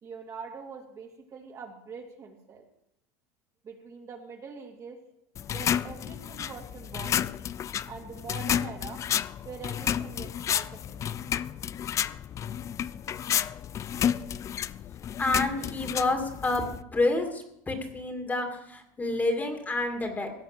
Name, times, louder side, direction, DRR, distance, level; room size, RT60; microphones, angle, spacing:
voice 1, 0.0-2.6 3.6-5.0 5.5-7.3 7.8-9.0 9.4-11.0, right 5 dB, 35° right, 1 dB, 2.4 m, -43 dB
sound 1, 5.4-16.8, left 9 dB, 35° left, 0.4 m, -31 dB
voice 2, 15.2-20.3, left 2 dB, 20° left, 3 dB, 2.4 m, -29 dB
16.5 x 6.9 x 6.7 m, 0.78 s
supercardioid pair, 115°, 10 cm